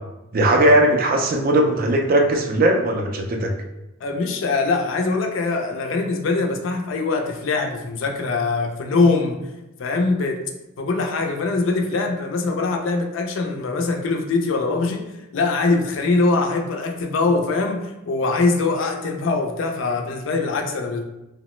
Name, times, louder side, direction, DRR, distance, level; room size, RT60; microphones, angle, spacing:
voice 1, 0.3-3.5, right 1 dB, 45° right, 3 dB, 0.3 m, -18 dB
voice 2, 4.0-9.4 9.8-10.4 10.8-15.0 15.3-21.0, left 3 dB, 65° left, 3 dB, 0.4 m, -22 dB
2.9 x 2.0 x 3.0 m, 0.97 s
head